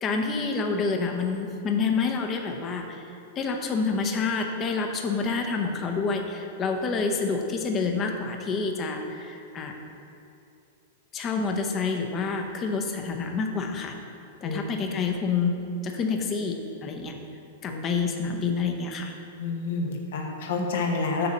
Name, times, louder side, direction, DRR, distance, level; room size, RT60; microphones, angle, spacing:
voice 1, 0.0-3.0 3.4-9.8 11.1-14.0 14.4-17.1 17.6-19.1, left 4 dB, 25° left, 4 dB, 0.8 m, -28 dB
voice 2, 19.4-21.3, left 4 dB, 70° left, 1 dB, 1.2 m, -29 dB
6.9 x 4.2 x 6.4 m, 2.6 s
hypercardioid pair, 135°, 0 cm